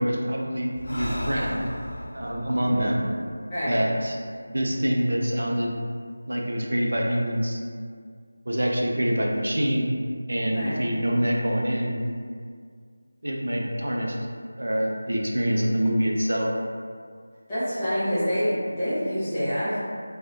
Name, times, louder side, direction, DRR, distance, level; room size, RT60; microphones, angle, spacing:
voice 1, 0.0-1.7 2.1-3.1 3.7-4.2 4.5-5.7 6.3-7.6 8.5-9.9 10.3-12.0 13.2-14.2 14.6-16.5, equal, 70° right, -1 dB, 0.4 m, -25 dB
Breathing, 0.7-4.3, left 1 dB, 75° left, 0.3 m, -37 dB
voice 2, 10.5-10.9 17.5-19.8, equal, 5° left, -17 dB, 0.4 m, -27 dB
2.4 x 2.1 x 2.6 m, 2.1 s
figure-of-eight pair, 180°, 0 cm